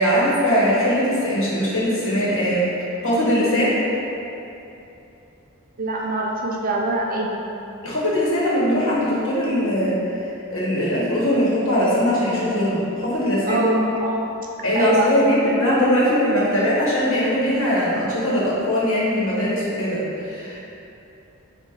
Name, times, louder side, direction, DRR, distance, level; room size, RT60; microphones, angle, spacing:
voice 1, 0.0-2.7 3.0-3.8 7.8-10.0 10.5-13.7 14.6-20.6, equal, 65° left, -7 dB, 1.1 m, -20 dB
voice 2, 5.8-7.4 13.5-14.2 14.7-15.4, right 2 dB, 40° right, -2 dB, 0.5 m, -23 dB
5.6 x 2.5 x 3.3 m, 2.9 s
head